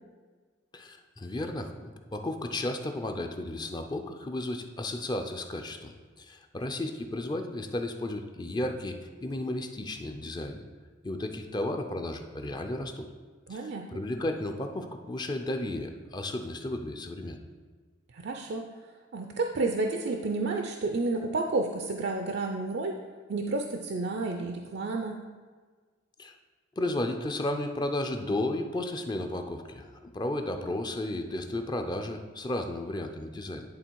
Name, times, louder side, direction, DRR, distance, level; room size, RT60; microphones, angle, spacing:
voice 1, 0.7-10.6 11.0-13.1 13.5-17.4 26.2-26.3 26.8-33.7, left 1 dB, 20° left, 5 dB, 0.5 m, -33 dB
voice 2, 13.5-14.0 18.1-18.7 19.1-23.0 23.3-25.2, right 3 dB, 60° right, 3 dB, 0.5 m, -31 dB
10.5 x 3.7 x 4.6 m, 1.5 s
head